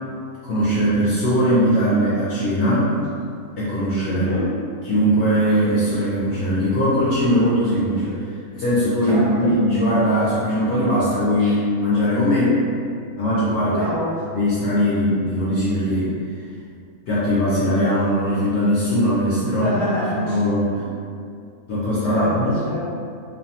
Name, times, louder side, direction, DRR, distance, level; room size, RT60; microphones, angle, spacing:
voice 1, 0.4-3.0 3.6-4.4 4.8-8.2 8.5-12.6 13.2-13.8 14.3-16.1 17.1-19.7 20.2-20.7 21.7-22.6, equal, 65° left, -9 dB, 0.7 m, -20 dB
voice 2, 4.1-4.5 9.1-9.6 11.4-11.6 13.6-14.2 19.4-20.4 20.8-20.9 22.0-23.0, equal, 25° right, -13 dB, 0.5 m, -27 dB
2.6 x 2.1 x 2.7 m, 2.4 s
omnidirectional pair, 1.5 m